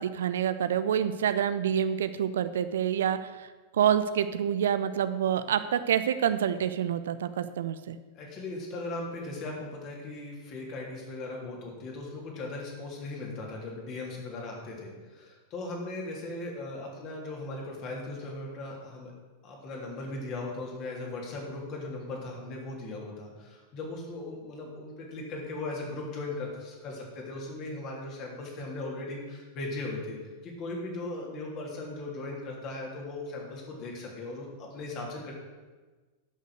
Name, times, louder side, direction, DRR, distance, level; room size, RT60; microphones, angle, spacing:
voice 1, 0.0-3.5 3.7-8.0, right 9 dB, 60° right, 12 dB, 0.5 m, -27 dB
voice 2, 8.1-19.1 19.4-30.2 30.4-35.3, left 2 dB, 35° left, -1 dB, 3.2 m, -38 dB
11.0 x 6.5 x 6.6 m, 1.3 s
figure-of-eight pair, 90°, 0 cm